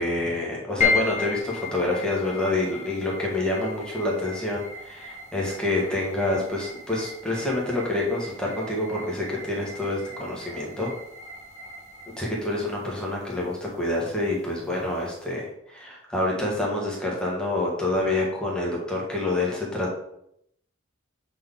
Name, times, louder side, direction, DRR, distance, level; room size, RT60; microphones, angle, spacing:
voice 1, 0.0-10.9 12.2-19.9, left 2 dB, 5° left, -3 dB, 1.6 m, -27 dB
sound 1, 0.8-15.3, left 5 dB, 35° left, 0.9 m, -35 dB
7.4 x 4.1 x 3.7 m, 0.76 s
head